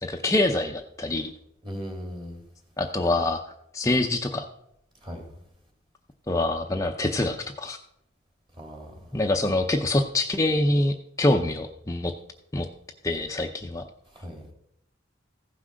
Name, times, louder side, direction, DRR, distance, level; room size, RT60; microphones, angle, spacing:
voice 1, 0.0-1.3 2.8-3.4 3.7-4.5 6.3-7.8 9.1-12.1 12.5-12.7 13.0-13.9, left 2 dB, 15° left, 3 dB, 0.6 m, -25 dB
voice 2, 1.6-2.4 5.0-5.2 8.6-8.9 14.1-14.5, equal, 25° right, 3 dB, 2.7 m, -37 dB
15.0 x 6.1 x 6.3 m, 0.76 s
head